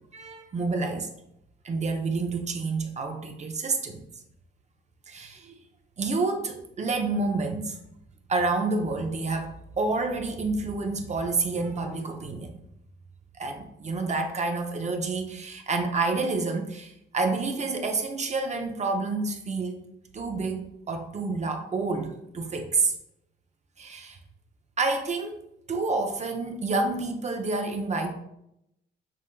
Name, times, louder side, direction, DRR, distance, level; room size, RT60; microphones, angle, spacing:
voice 1, 0.1-1.1 1.6-4.0 5.1-5.6 6.0-7.8 8.3-12.5 13.4-19.9 20.1-22.9 23.8-24.2 24.8-25.4 25.7-28.1, right 3 dB, 35° right, 4 dB, 0.6 m, -29 dB
7.3 x 2.5 x 2.2 m, 0.81 s
cardioid pair, 90°, 20 cm